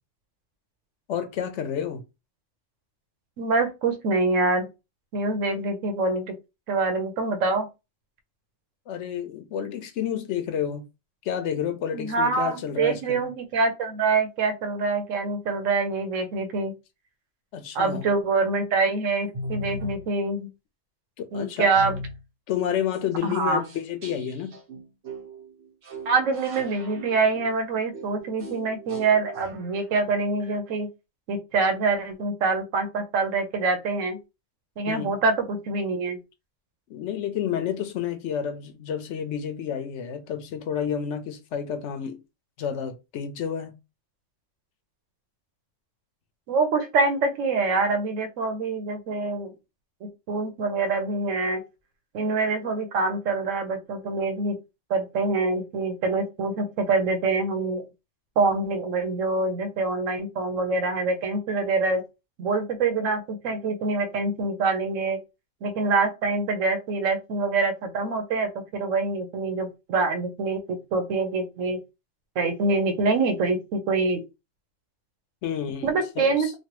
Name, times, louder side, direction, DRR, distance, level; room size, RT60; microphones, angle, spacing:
voice 1, 1.1-2.0 8.9-10.8 11.2-13.3 17.5-18.0 21.2-21.8 22.5-24.6 34.9-35.2 36.9-42.2 42.6-43.7 75.4-76.5, left 8 dB, 75° left, 0.9 m, -30 dB
voice 2, 3.4-4.7 5.1-6.4 6.7-7.7 11.9-16.7 17.7-20.5 21.3-22.0 23.2-23.6 26.1-30.9 31.3-34.2 34.8-36.2 46.5-49.5 50.3-51.6 52.1-54.6 54.9-57.8 58.4-62.0 62.4-65.2 65.6-71.8 72.4-74.2 75.8-76.5, right 3 dB, 90° right, 1.1 m, -25 dB
sound 1, 19.3-20.1 21.7-22.2 22.9-23.0 23.3-23.4 23.6-29.8, equal, 60° right, 1.2 m, -38 dB
3.1 x 2.3 x 2.9 m
omnidirectional pair, 1.3 m